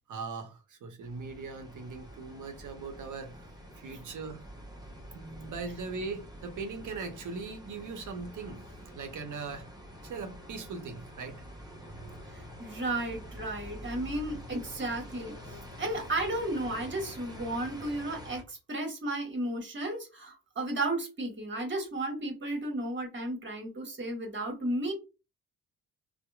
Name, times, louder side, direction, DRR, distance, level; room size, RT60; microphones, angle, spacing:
voice 1, 0.1-3.5 3.8-4.4 5.1-8.7 8.9-9.7 10.0-11.4, right 4 dB, 45° right, 0.7 m, -40 dB
sound 1, 1.0-18.4, equal, 10° right, 0.8 m, -47 dB
voice 2, 12.3-24.9, right 1 dB, 30° right, 1.2 m, -34 dB
2.8 x 2.1 x 2.2 m
hypercardioid pair, 40°, 41 cm